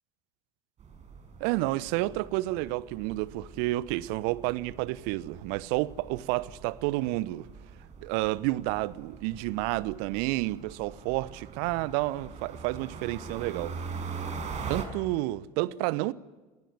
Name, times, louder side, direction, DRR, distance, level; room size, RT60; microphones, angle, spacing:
sound 1, 0.8-14.9, right 5 dB, 35° right, 6.1 m, -43 dB
voice 1, 1.4-7.5 8.0-13.8 14.7-16.1, right 18 dB, 55° right, 1.0 m, -30 dB
28.5 x 21.0 x 9.6 m
figure-of-eight pair, 70°, 20 cm